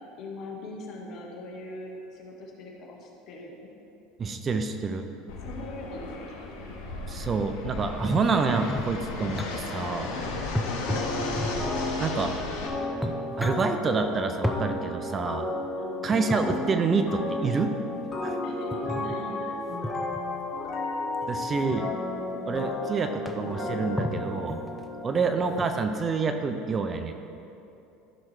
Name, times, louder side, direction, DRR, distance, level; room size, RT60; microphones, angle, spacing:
voice 1, 0.2-3.7 5.4-6.7 10.0-10.5 15.8-16.1 18.4-19.6 22.3-22.5, left 2 dB, 55° left, 0 dB, 1.8 m, -42 dB
voice 2, 4.2-5.1 7.1-10.1 12.0-12.3 13.4-15.5 16.0-17.7 18.2-18.4 21.3-21.8 22.5-24.6 25.0-27.1, right 4 dB, 30° right, 7 dB, 0.7 m, -27 dB
Fixed-wing aircraft airplane, 5.3-12.7, left 3 dB, 75° left, 1.6 m, -35 dB
sound 1, 8.0-9.5 10.5-11.8 12.5-12.6 12.9-13.7 14.4-14.6 16.1-16.6 18.7-19.2 19.8-20.2 21.2-21.8 22.5-22.6 22.9-23.0 23.3-23.6 24.0-24.9 25.5-25.6, equal, 5° left, 0.6 m, -33 dB
sound 2, 10.8-25.4, left 2 dB, 30° left, 1.6 m, -33 dB
14.5 x 6.1 x 3.3 m, 2.8 s
hypercardioid pair, 90°, 0 cm